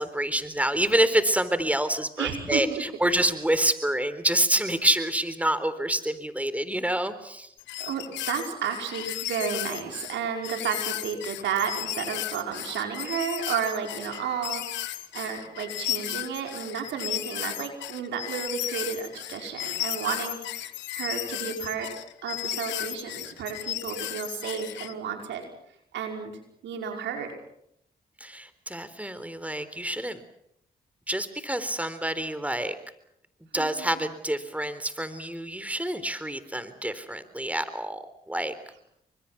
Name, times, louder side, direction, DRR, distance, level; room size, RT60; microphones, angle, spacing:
voice 1, 0.0-7.5 28.2-30.2 31.1-32.7 33.5-38.5, right 1 dB, 10° right, 13 dB, 3.8 m, -27 dB
voice 2, 2.2-2.8 7.8-21.9 22.2-25.4 25.9-27.3 33.5-34.0, right 7 dB, 80° right, 4 dB, 5.3 m, -32 dB
sound 1, 7.6-24.9, left 15 dB, 85° left, 1.3 m, -34 dB
29.5 x 24.5 x 6.0 m, 0.74 s
supercardioid pair, 40°, 18 cm